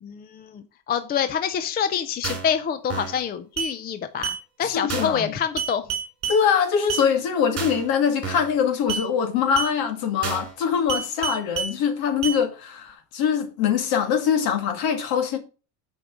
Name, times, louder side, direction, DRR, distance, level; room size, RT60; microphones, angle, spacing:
voice 1, 0.0-5.8, left 8 dB, 20° left, 0.5 m, -27 dB
sound 1, 2.2-2.5 2.9-3.2 3.6-3.7 4.2-4.4 4.9-5.2 5.6-6.4 6.9-7.1 7.6-7.9 8.2-8.5 8.9-9.1 9.6-9.7 10.2-10.5 10.9-11.7 12.2-12.4, right 7 dB, 30° right, 3.6 m, -29 dB
voice 2, 4.6-5.3 6.3-15.4, left 7 dB, 60° left, 2.4 m, -23 dB
10.0 x 5.4 x 6.3 m
cardioid pair, 150°, 43 cm